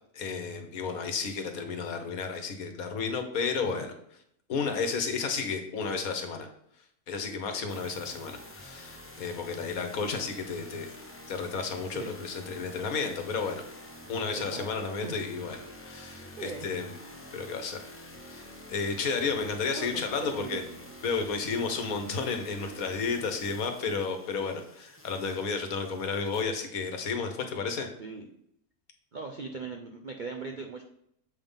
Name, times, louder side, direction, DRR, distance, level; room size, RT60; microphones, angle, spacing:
voice 1, 0.1-3.9 4.5-6.5 7.1-11.0 11.3-13.6 14.1-15.6 15.8-16.9 17.3-17.8 18.3-20.6 21.0-27.9, left 5 dB, 70° left, 6 dB, 1.4 m, -32 dB
sound 1, 7.7-26.4, left 1 dB, 15° left, 0.5 m, -48 dB
voice 2, 14.3-15.2 16.4-16.7 19.7-20.6 28.0-28.3 29.1-30.8, right 4 dB, 55° right, 3 dB, 0.5 m, -39 dB
7.4 x 3.6 x 5.4 m, 0.72 s
omnidirectional pair, 1.6 m